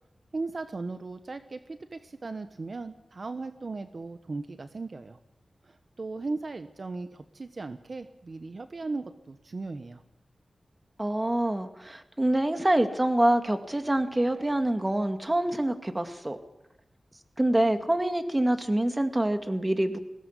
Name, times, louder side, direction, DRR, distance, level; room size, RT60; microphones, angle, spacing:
voice 1, 0.3-5.2 5.6-10.0, right 3 dB, 55° right, 9 dB, 1.1 m, -37 dB
voice 2, 11.0-16.4 17.4-20.0, right 1 dB, 20° right, 7 dB, 2.1 m, -26 dB
21.0 x 17.0 x 8.3 m, 0.93 s
wide cardioid pair, 70°, 0 cm